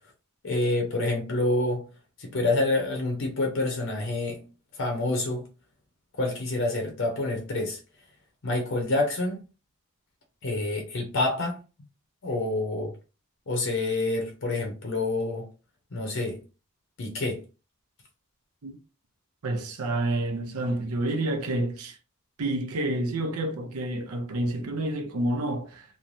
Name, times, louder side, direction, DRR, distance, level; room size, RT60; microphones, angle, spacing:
voice 1, 0.4-1.9 2.2-4.4 4.8-5.4 6.2-7.8 8.4-9.4 10.4-11.6 12.2-12.9 13.5-15.5 15.9-16.4 17.0-17.4, left 2 dB, 60° left, 0.7 m, -27 dB
voice 2, 19.4-22.0 22.4-25.8, right 1 dB, 90° right, 0.7 m, -29 dB
3.1 x 2.1 x 2.6 m
head